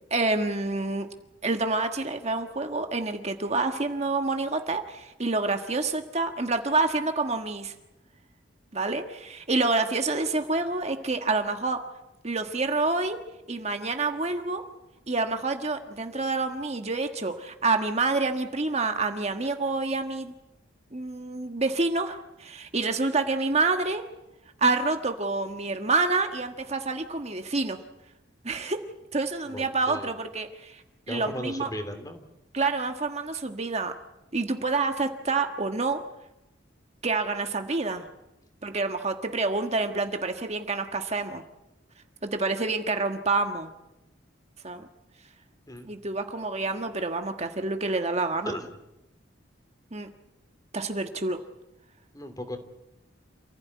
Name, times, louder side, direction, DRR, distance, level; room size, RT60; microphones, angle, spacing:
voice 1, 0.1-1.1 1.4-7.7 8.7-11.8 12.2-13.2 13.5-14.6 15.1-20.3 20.9-24.0 24.6-27.8 28.4-28.8 29.1-30.8 31.1-31.7 32.5-33.9 34.3-36.0 37.0-38.1 38.6-41.4 42.2-43.7 44.6-44.9 45.8-48.5 49.9-50.1 50.7-51.4, right 3 dB, 35° right, 6 dB, 1.4 m, -28 dB
voice 2, 29.5-30.2 31.1-32.2 45.7-45.9 48.4-48.7 52.1-52.6, equal, 20° left, 8 dB, 2.9 m, -36 dB
28.0 x 16.0 x 9.5 m, 0.95 s
head